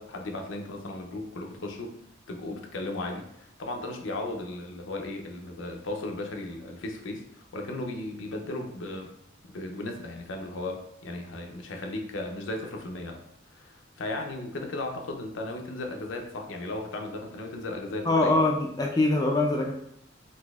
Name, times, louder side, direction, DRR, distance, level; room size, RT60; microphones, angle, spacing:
voice 1, 0.0-1.9 2.3-9.1 9.5-13.2 13.5-18.3, left 2 dB, 70° left, 3 dB, 0.5 m, -36 dB
voice 2, 18.0-19.7, left 2 dB, 20° left, 0 dB, 0.3 m, -23 dB
4.0 x 2.6 x 2.3 m, 0.73 s
head